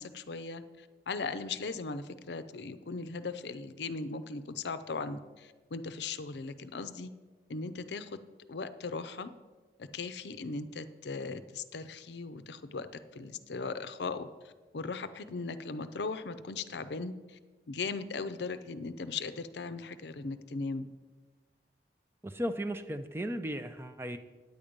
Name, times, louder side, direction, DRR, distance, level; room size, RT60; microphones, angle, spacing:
voice 1, 0.0-7.1 7.5-8.2 8.5-9.3 9.8-12.9 13.1-14.3 14.7-17.4 17.7-20.9, left 4 dB, 75° left, 12 dB, 0.6 m, -38 dB
voice 2, 22.2-24.2, equal, 15° right, 9 dB, 0.4 m, -35 dB
9.4 x 8.6 x 5.2 m, 1.3 s
head